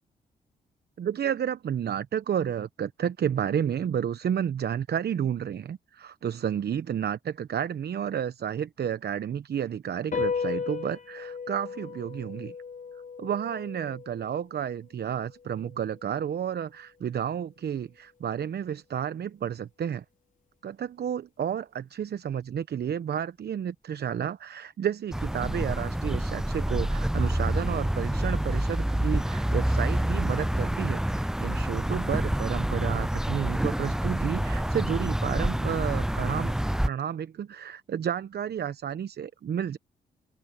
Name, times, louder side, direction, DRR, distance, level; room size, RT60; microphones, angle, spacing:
voice 1, 1.0-12.5 13.2-20.0 20.6-36.5 36.8-39.8, right 9 dB, 55° right, 1.0 m, -31 dB
sound 1, 10.1-16.8, left 5 dB, 45° left, 4.7 m, -36 dB
sound 2, 25.1-36.9, right 1 dB, 5° right, 0.3 m, -27 dB
open air
hypercardioid pair, 50°, 19 cm